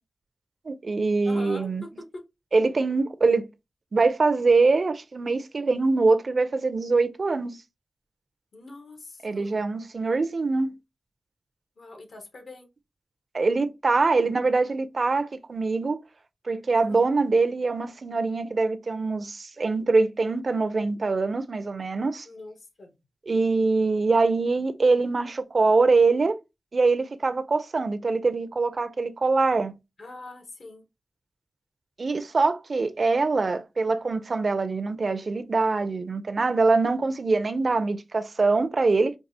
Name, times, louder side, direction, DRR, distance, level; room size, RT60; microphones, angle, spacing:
voice 1, 0.7-1.8 2.5-3.5 3.9-7.6 9.2-10.7 13.3-16.0 16.5-22.3 23.3-26.4 26.7-29.7 32.0-39.1, right 3 dB, 50° right, 0.4 m, -23 dB
voice 2, 1.2-1.7 2.1-2.2 8.5-9.6 11.8-12.7 16.8-17.1 22.2-22.9 30.0-30.8, left 2 dB, 75° left, 1.0 m, -43 dB
4.6 x 2.3 x 2.7 m
wide cardioid pair, 110°, 0 cm